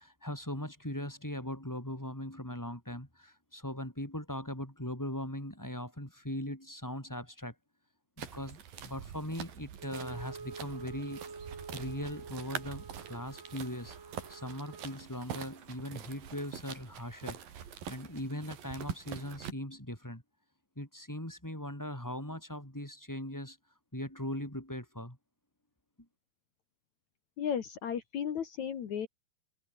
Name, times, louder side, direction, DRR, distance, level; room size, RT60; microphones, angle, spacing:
voice 1, 0.0-7.5 8.2-11.2 11.7-14.0 14.3-17.4 17.9-20.2 20.8-23.6 23.9-25.2, left 1 dB, 5° left, 4.8 m, -40 dB
sound 1, 8.2-19.5, right 8 dB, 90° right, 4.4 m, -45 dB
Wind instrument woodwind instrument, 9.8-15.1, right 4 dB, 70° right, 7.9 m, -47 dB
voice 2, 27.4-29.1, left 8 dB, 60° left, 3.0 m, -34 dB
omnidirectional pair, 3.9 m